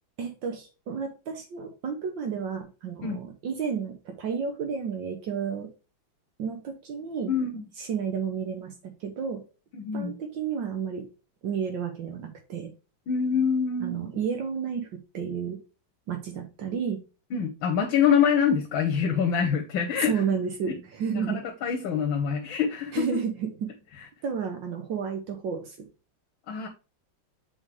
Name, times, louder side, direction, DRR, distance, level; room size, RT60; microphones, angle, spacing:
voice 1, 0.2-5.7 6.4-7.3 7.8-9.4 9.9-11.1 11.4-12.7 13.8-15.6 16.1-17.0 20.0-21.4 22.9-23.7 24.2-25.9, right 6 dB, 70° right, 4 dB, 1.7 m, -31 dB
voice 2, 7.3-7.7 9.7-10.1 13.1-14.1 17.3-20.1 21.1-23.0 26.5-26.7, left 7 dB, 85° left, 3 dB, 1.7 m, -25 dB
7.3 x 4.4 x 3.2 m, 0.32 s
omnidirectional pair, 2.1 m